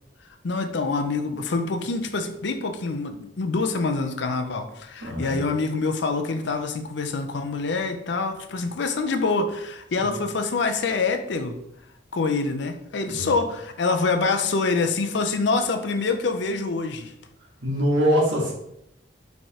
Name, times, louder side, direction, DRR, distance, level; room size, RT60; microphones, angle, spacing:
voice 1, 0.4-11.6 12.1-17.1, left 3 dB, 65° left, 7 dB, 0.5 m, -26 dB
voice 2, 5.0-5.4 9.9-10.2 13.1-13.3 17.6-18.5, equal, 70° right, -3 dB, 1.5 m, -23 dB
5.4 x 3.3 x 2.9 m, 0.80 s
head